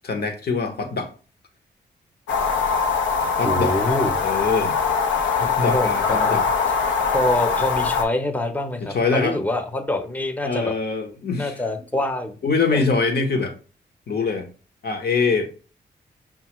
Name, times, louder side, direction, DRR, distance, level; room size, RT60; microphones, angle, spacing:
voice 1, 0.0-1.1 3.4-3.7 4.2-4.7 5.4-6.4 8.8-9.4 10.4-11.6 12.4-13.5 14.1-14.5 14.8-15.5, left 4 dB, 60° left, 0.9 m, -23 dB
sound 1, 2.3-8.0, left 5 dB, 90° left, 0.6 m, -22 dB
voice 2, 3.4-4.1 5.4-6.4 7.1-10.7 11.4-12.4 12.7-12.8, left 1 dB, 10° left, 0.7 m, -25 dB
5.5 x 2.3 x 3.0 m
supercardioid pair, 45°, 19 cm